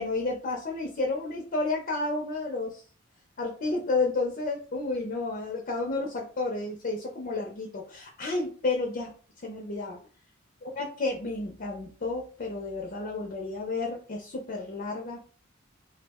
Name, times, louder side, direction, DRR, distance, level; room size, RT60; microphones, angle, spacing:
voice 1, 0.0-2.8 3.4-9.1 9.4-10.0 10.8-15.2, left 3 dB, 45° left, 1 dB, 0.5 m, -31 dB
2.3 x 2.0 x 3.4 m, 0.40 s
head